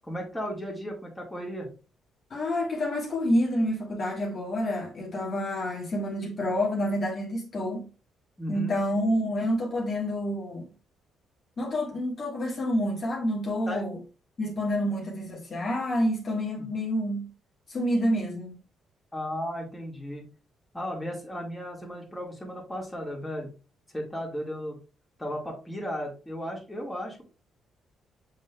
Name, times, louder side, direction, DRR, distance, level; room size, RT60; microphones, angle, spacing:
voice 1, 0.0-1.7 8.4-8.8 13.7-13.8 16.6-16.7 19.1-20.2 20.7-23.5 23.9-24.8 25.2-27.2, equal, 10° left, 1.9 m, -35 dB
voice 2, 2.3-7.9 8.5-10.7 11.6-14.0 14.4-17.3 17.7-18.6, equal, 45° left, 1.4 m, -28 dB
6.2 x 3.6 x 2.3 m
cardioid pair, 90°, 0 cm